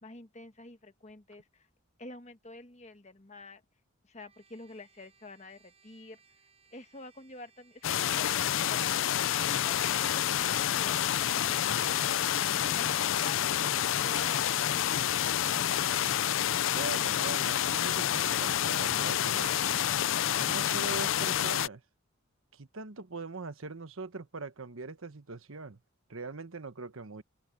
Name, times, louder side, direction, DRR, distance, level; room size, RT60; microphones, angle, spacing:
voice 1, 0.0-1.7 2.0-3.6 4.0-6.2 6.7-12.1 12.6-15.0, left 2 dB, 30° left, 1.3 m, -48 dB
Trumpet, 4.2-12.7, right 6 dB, 30° right, 7.3 m, -66 dB
sound 1, 7.8-21.7, left 11 dB, 65° left, 0.4 m, -28 dB
voice 2, 16.7-19.5 20.3-21.8 22.5-25.8 26.1-27.2, right 3 dB, 75° right, 1.2 m, -41 dB
open air
head